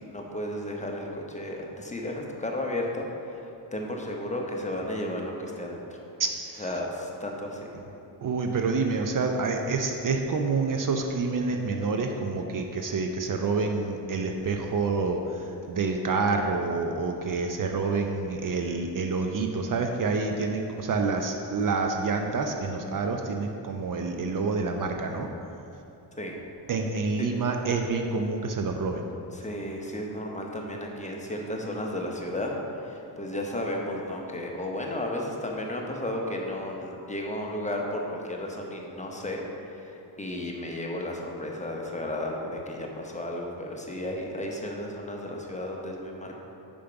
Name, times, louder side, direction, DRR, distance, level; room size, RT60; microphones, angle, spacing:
voice 1, 0.0-6.0 6.6-7.7 26.2-26.3 27.2-27.3 29.3-32.5 32.8-46.3, left 1 dB, 15° left, 0 dB, 0.9 m, -33 dB
voice 2, 6.2-6.6 8.2-25.3 26.7-29.0, right 4 dB, 45° right, 4 dB, 0.6 m, -28 dB
5.2 x 5.1 x 5.8 m, 2.8 s
cardioid pair, 85°, 44 cm